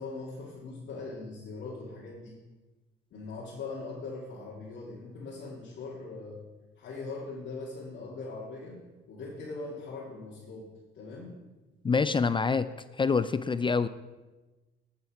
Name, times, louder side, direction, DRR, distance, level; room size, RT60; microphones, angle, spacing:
voice 1, 0.0-2.4 3.1-6.5 6.8-10.7 10.9-11.3, left 3 dB, 70° left, -6 dB, 2.4 m, -41 dB
voice 2, 11.8-12.7 13.0-13.9, left 5 dB, 25° left, 13 dB, 0.4 m, -26 dB
10.5 x 7.6 x 4.9 m, 1.2 s
cardioid pair, 90°, 20 cm